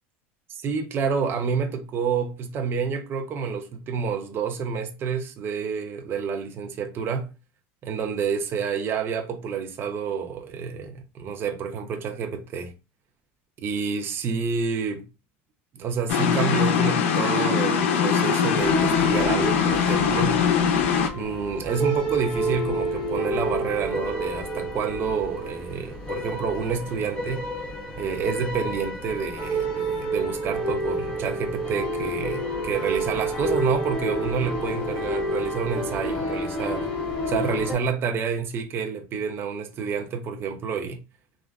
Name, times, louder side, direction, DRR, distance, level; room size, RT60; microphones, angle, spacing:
voice 1, 0.5-7.3 7.8-12.7 13.6-15.1 15.7-20.4 21.1-27.4 28.0-36.9 37.3-41.0, right 6 dB, 35° right, 0.6 m, -29 dB
sound 1, 16.1-21.1, left 7 dB, 85° left, 0.5 m, -22 dB
sound 2, 18.6-37.8, right 1 dB, 15° left, 1.5 m, -29 dB
3.1 x 2.4 x 2.3 m
supercardioid pair, 120°, 7 cm